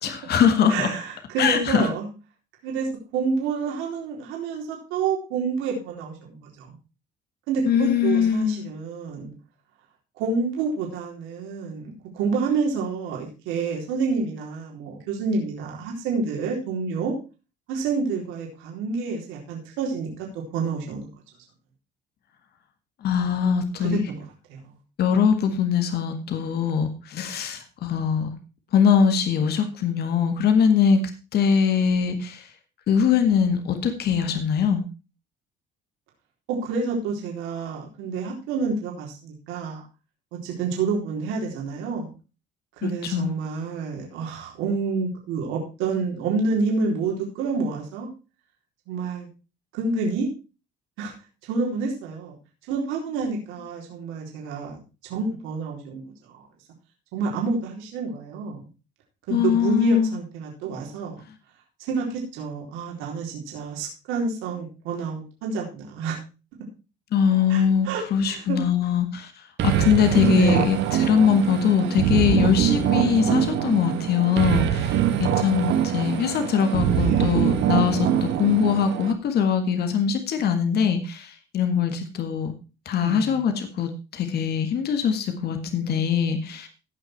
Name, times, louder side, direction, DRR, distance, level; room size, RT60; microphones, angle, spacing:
voice 1, 0.0-0.9 1.4-1.9 7.7-8.7 23.0-24.1 25.0-28.4 28.7-31.0 31.3-32.5 32.9-34.8 42.8-43.3 59.3-60.1 67.1-82.5 82.9-86.7, left 7 dB, 55° left, 7 dB, 1.8 m, -22 dB
voice 2, 0.7-2.1 2.6-2.9 3.1-6.8 7.5-9.3 10.2-17.1 17.7-21.1 23.8-24.2 24.5-24.6 32.1-32.2 36.5-39.8 40.4-42.1 42.8-48.1 48.9-49.3 49.7-50.3 51.0-51.1 51.5-52.4 52.7-54.8 55.1-56.0 56.3-56.4 57.1-58.6 59.3-61.2 61.8-66.2 67.5-68.6 70.1-70.6 76.9-77.6 83.0-83.4, right 4 dB, 90° right, -1 dB, 4.1 m, -28 dB
sound 1, 69.6-79.1, right 10 dB, 70° right, 1.7 m, -23 dB
16.5 x 5.9 x 4.6 m, 0.32 s
cardioid pair, 110°, 20 cm